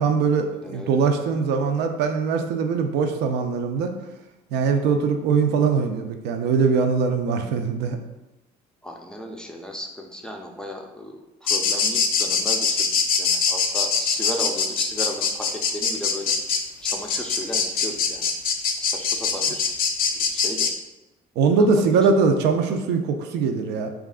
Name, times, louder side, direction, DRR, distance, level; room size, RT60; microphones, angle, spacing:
voice 1, 0.0-3.9 4.5-8.0 21.4-23.9, right 5 dB, 85° right, 5 dB, 0.5 m, -21 dB
voice 2, 0.6-1.0 8.8-12.9 13.1-16.4 16.8-18.3 18.8-19.7 20.1-20.7 21.5-21.7, equal, 5° left, 1 dB, 0.4 m, -35 dB
sound 1, 11.5-20.7, left 5 dB, 60° left, 0.5 m, -23 dB
3.2 x 2.4 x 3.6 m, 0.98 s
cardioid pair, 110°, 17 cm